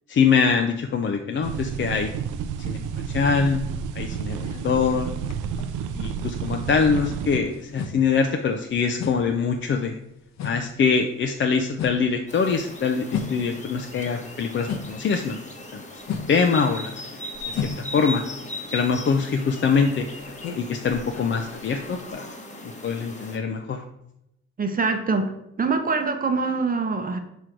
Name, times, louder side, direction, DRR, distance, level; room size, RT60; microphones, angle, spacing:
voice 1, 0.1-2.1 2.7-3.6 3.9-5.1 5.9-10.0 10.4-15.4 15.7-15.8 16.3-16.9 17.4-17.6 17.9-18.2 18.7-20.1 20.6-22.3 22.6-23.8, left 5 dB, 40° left, 4 dB, 0.5 m, -23 dB
sound 1, 1.4-7.4, right 7 dB, 85° right, 0.5 m, -30 dB
sound 2, 3.8-6.2 6.5-15.1 15.5-22.1, left 6 dB, 65° left, 0.8 m, -36 dB
sound 3, 12.3-23.4, left 1 dB, 25° left, 1.1 m, -38 dB
voice 2, 24.6-25.3 25.6-27.2, right 4 dB, 30° right, 6 dB, 0.7 m, -24 dB
6.1 x 3.0 x 5.0 m, 0.82 s
cardioid pair, 90°, 30 cm